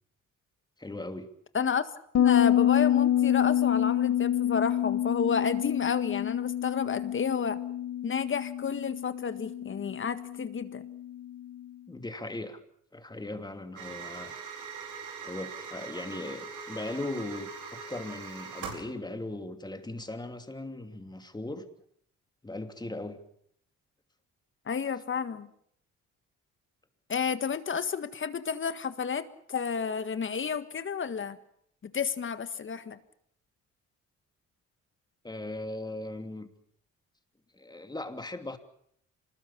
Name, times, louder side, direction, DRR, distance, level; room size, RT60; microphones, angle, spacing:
voice 1, 0.8-1.3 11.9-12.6 12.9-14.3 15.2-21.7 22.4-23.2 35.2-36.5 37.5-38.6, left 2 dB, 15° left, 7 dB, 2.9 m, -38 dB
Bass guitar, 2.1-11.5, left 11 dB, 60° left, 1.8 m, -27 dB
voice 2, 2.2-7.6 8.0-10.8 24.7-25.5 27.1-31.4 31.8-33.0, left 6 dB, 40° left, 11 dB, 1.7 m, -31 dB
sound 1, 13.8-18.9, right 5 dB, 75° right, 5.6 m, -41 dB
26.0 x 20.0 x 7.3 m, 0.68 s
cardioid pair, 90°, 30 cm